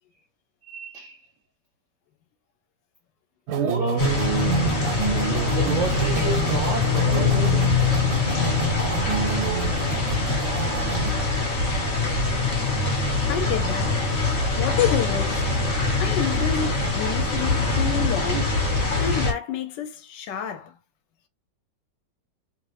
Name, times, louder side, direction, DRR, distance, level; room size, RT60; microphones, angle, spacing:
voice 1, 0.7-1.3 3.6-4.2 5.5-7.7 17.7-17.9 18.3-18.4, right 4 dB, 65° right, 0.7 m, -30 dB
sound 1, 3.5-11.1, right 6 dB, 85° right, 1.3 m, -28 dB
sound 2, 4.0-19.3, left 3 dB, 45° left, 1.3 m, -23 dB
voice 2, 13.3-14.0 14.5-15.4 16.0-18.5 19.0-20.7, left 9 dB, 80° left, 1.2 m, -29 dB
3.0 x 2.5 x 3.2 m
omnidirectional pair, 2.0 m